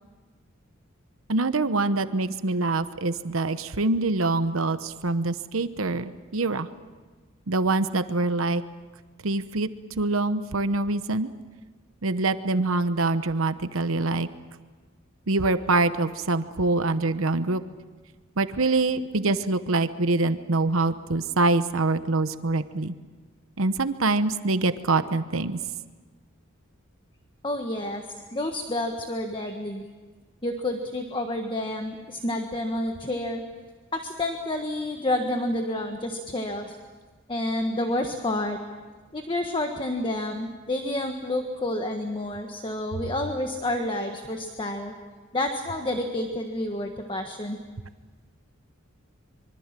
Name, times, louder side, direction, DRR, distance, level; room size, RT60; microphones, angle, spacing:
voice 1, 1.3-6.7 7.5-8.6 9.2-9.7 10.0-11.3 12.0-14.3 15.3-17.6 18.4-22.9 23.6-25.6, right 2 dB, 75° right, 11 dB, 1.0 m, -25 dB
voice 2, 27.4-28.0 28.3-29.8 30.4-33.4 33.9-36.8 37.3-38.6 39.1-44.9 45.3-47.6, left 1 dB, 25° left, 4 dB, 1.5 m, -29 dB
25.5 x 24.0 x 7.5 m, 1.4 s
head